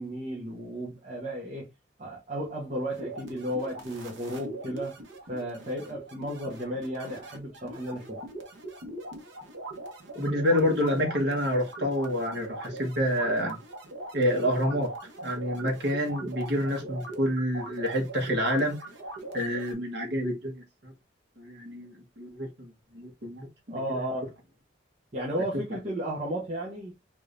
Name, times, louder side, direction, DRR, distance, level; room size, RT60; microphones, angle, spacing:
voice 1, 0.0-1.7 2.0-4.9 5.3-8.2 23.7-24.3 25.1-26.9, equal, 40° right, 1.0 m, -34 dB
sound 1, 2.9-19.7, right 2 dB, 80° right, 0.9 m, -41 dB
voice 2, 10.1-13.6 14.1-14.9 15.2-18.8 19.3-20.9 21.4-24.0, equal, 60° right, 1.3 m, -28 dB
3.6 x 3.3 x 2.5 m
head